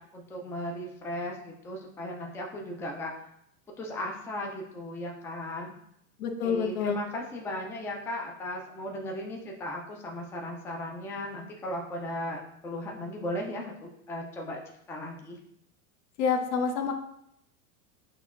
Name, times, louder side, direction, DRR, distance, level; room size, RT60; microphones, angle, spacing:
voice 1, 0.1-3.1 3.7-5.7 6.4-14.6 14.9-15.4, left 1 dB, 5° left, 0 dB, 0.4 m, -36 dB
voice 2, 6.2-7.0 16.2-16.9, left 6 dB, 70° left, 5 dB, 0.8 m, -27 dB
6.2 x 2.7 x 2.5 m, 0.75 s
hypercardioid pair, 105°, 44 cm